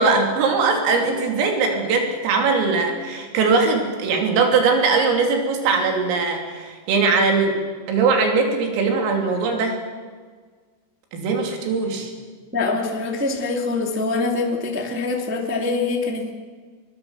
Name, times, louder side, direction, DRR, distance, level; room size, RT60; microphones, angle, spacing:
voice 1, 0.0-7.6 7.9-9.8 11.1-12.1, right 4 dB, 90° right, 3 dB, 5.8 m, -20 dB
voice 2, 12.5-16.3, left 3 dB, 10° right, 1 dB, 0.8 m, -24 dB
23.0 x 22.5 x 7.3 m, 1.5 s
omnidirectional pair, 5.8 m